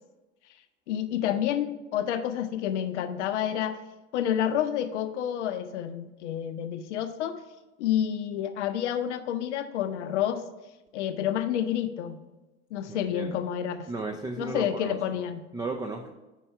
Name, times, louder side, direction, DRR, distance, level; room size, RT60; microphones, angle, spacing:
voice 1, 0.9-3.8 4.1-7.4 7.8-10.4 10.9-12.2 12.7-13.9 14.4-15.4, left 10 dB, 75° left, 9 dB, 0.6 m, -29 dB
voice 2, 12.9-13.4 13.9-15.2 15.5-16.1, right 3 dB, 10° right, 5 dB, 0.4 m, -35 dB
5.6 x 4.6 x 5.4 m, 1.1 s
hypercardioid pair, 90°, 36 cm